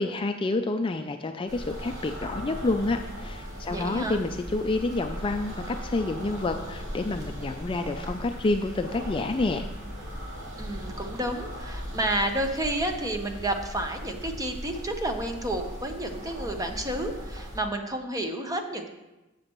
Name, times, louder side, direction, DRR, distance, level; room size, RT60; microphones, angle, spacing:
voice 1, 0.0-9.7, left 2 dB, 25° left, 6 dB, 0.4 m, -28 dB
sound 1, 1.5-17.6, equal, 65° right, 2.4 m, -38 dB
voice 2, 3.7-4.2 10.6-18.9, right 1 dB, 15° right, 4 dB, 0.8 m, -30 dB
11.5 x 7.5 x 3.0 m, 1.0 s
head